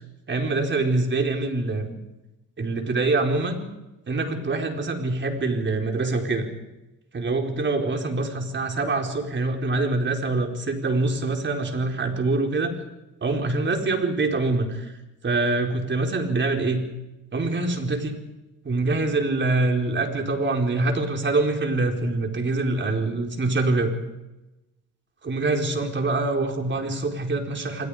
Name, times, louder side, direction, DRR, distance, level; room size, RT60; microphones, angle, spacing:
voice 1, 0.3-1.9 2.6-3.6 4.1-6.5 7.1-12.7 13.2-14.9 15.2-16.8 17.3-18.2 18.6-23.9 25.2-27.9, right 3 dB, 35° right, 3 dB, 4.5 m, -24 dB
26.0 x 21.0 x 5.0 m, 1.0 s
supercardioid pair, 75°, 33 cm